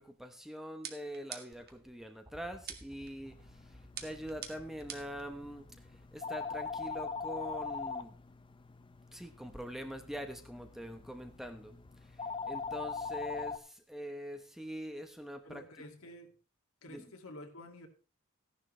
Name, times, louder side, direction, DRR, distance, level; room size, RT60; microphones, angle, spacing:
voice 1, 0.0-8.2 9.1-15.6 16.9-17.1, equal, ahead, 0.9 m, -44 dB
sound 1, 0.8-1.8 2.7-3.1 4.0-5.2, right 8 dB, 45° right, 1.4 m, -45 dB
sound 2, 1.5-8.7 9.8-9.9, equal, 20° right, 2.1 m, -60 dB
sound 3, 3.2-13.6, left 5 dB, 25° left, 0.6 m, -42 dB
voice 2, 15.4-16.4 16.8-17.9, left 1 dB, 75° left, 2.3 m, -50 dB
14.5 x 10.5 x 3.2 m
head